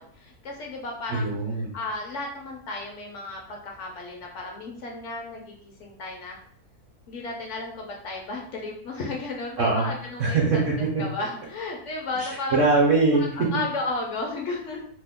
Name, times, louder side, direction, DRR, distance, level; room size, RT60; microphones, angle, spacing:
voice 1, 0.0-1.3 1.7-6.4 7.1-12.6 13.2-14.8, left 2 dB, 65° left, 0 dB, 0.8 m, -34 dB
voice 2, 1.1-1.7 9.6-9.9 10.2-11.1 12.2-13.5, right 3 dB, 65° right, -3 dB, 0.9 m, -22 dB
2.8 x 2.0 x 3.5 m, 0.62 s
omnidirectional pair, 1.6 m